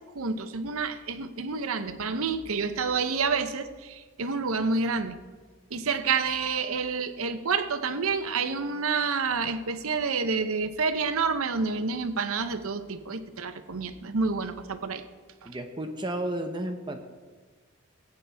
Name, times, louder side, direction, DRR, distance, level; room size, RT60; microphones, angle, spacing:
voice 1, 0.1-5.2 5.7-15.0 15.4-15.5, right 4 dB, 80° right, 10 dB, 0.8 m, -29 dB
voice 2, 15.5-17.0, right 1 dB, 20° right, 5 dB, 0.7 m, -32 dB
19.0 x 9.1 x 3.5 m, 1.4 s
head